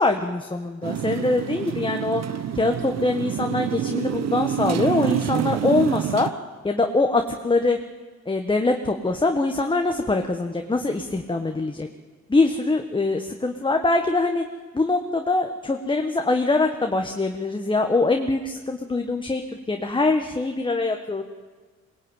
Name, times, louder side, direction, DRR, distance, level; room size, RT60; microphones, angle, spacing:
voice 1, 0.0-2.2 2.5-6.3 6.6-7.8 8.3-11.9 12.3-14.4 14.7-19.4 19.7-21.2, left 3 dB, 15° left, 4 dB, 1.4 m, -23 dB
Motorcycle, 0.8-6.3, right 10 dB, 60° right, 1.0 m, -27 dB
22.0 x 19.5 x 9.0 m, 1.4 s
cardioid pair, 90°, 30 cm